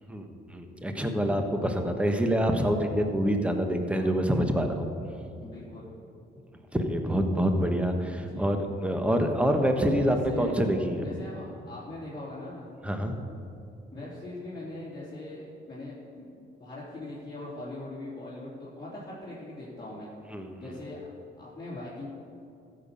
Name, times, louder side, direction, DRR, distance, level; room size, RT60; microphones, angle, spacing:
voice 1, 0.1-4.9 6.7-11.0 12.8-13.1 20.3-20.5, equal, 5° right, 5 dB, 1.2 m, -26 dB
voice 2, 5.4-5.8 8.2-8.5 9.9-10.6 10.9-12.7 13.9-20.1 20.6-21.0 21.4-22.1, left 2 dB, 20° left, -10 dB, 3.0 m, -41 dB
14.5 x 6.8 x 5.6 m, 2.6 s
cardioid pair, 90°, 20 cm